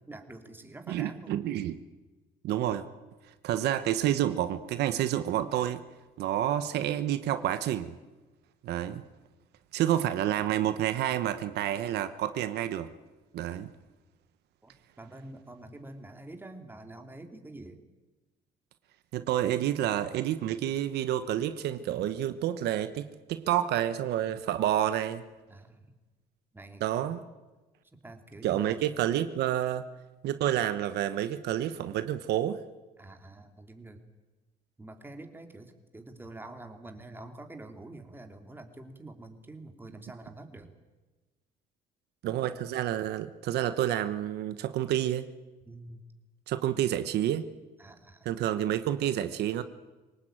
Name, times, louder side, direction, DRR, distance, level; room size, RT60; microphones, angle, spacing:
voice 1, 0.1-1.4 14.6-17.8 25.5-25.9 26.5-27.1 28.0-28.8 33.0-34.0 34.8-40.7 45.7-46.0 47.8-48.3, right 2 dB, 10° right, 5 dB, 2.9 m, -47 dB
voice 2, 0.9-1.8 2.4-2.8 3.4-5.8 6.2-7.9 8.6-9.0 9.7-12.9 13.3-13.7 19.1-25.2 26.8-27.2 28.4-29.8 30.2-32.6 42.2-45.3 46.5-47.5 48.2-49.6, right 12 dB, 75° right, 11 dB, 1.1 m, -29 dB
24.0 x 19.0 x 9.0 m, 1.2 s
cardioid pair, 110°, 17 cm